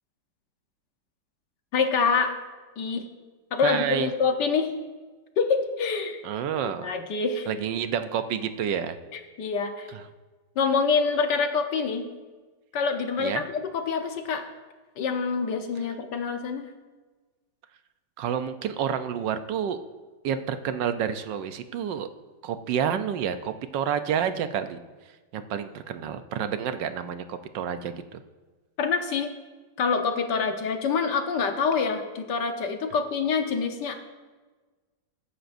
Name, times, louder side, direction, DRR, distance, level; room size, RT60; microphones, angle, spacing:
voice 1, 1.7-2.4 2.8-3.1 3.5-4.7 5.4-6.2 6.6-7.5 9.1-9.9 10.6-12.1 12.7-14.4 15.0-16.7 28.8-29.3 29.8-33.9, left 5 dB, 70° left, 5 dB, 1.7 m, -26 dB
voice 2, 3.6-4.1 6.2-6.9 7.5-9.0 9.9-10.0 13.2-13.4 18.2-19.8 20.2-22.1 22.4-24.8 25.3-28.2, right 8 dB, 80° right, 10 dB, 1.4 m, -29 dB
22.0 x 10.0 x 2.6 m, 1.3 s
omnidirectional pair, 1.9 m